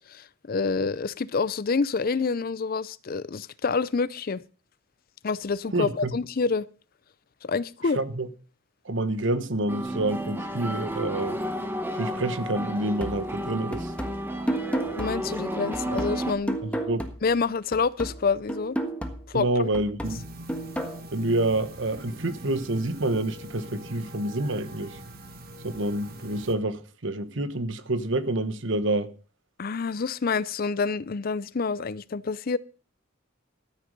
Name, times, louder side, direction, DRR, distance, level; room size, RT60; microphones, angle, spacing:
voice 1, 0.1-4.4 5.2-6.7 7.4-8.0 15.0-16.6 17.2-18.8 19.3-19.7 29.6-32.6, left 4 dB, 50° left, 0.5 m, -27 dB
voice 2, 5.7-6.1 8.0-8.3 8.8-11.4 12.0-13.9 16.6-17.0 19.3-20.2 21.1-25.0 25.6-29.1, right 2 dB, 65° right, 1.1 m, -28 dB
sound 1, 9.7-16.3, equal, 10° right, 1.4 m, -32 dB
sound 2, 13.0-17.4 17.7-21.0, right 1 dB, 5° left, 1.4 m, -33 dB
sound 3, 20.0-26.5, right 1 dB, 50° right, 1.7 m, -43 dB
13.5 x 8.1 x 5.3 m
head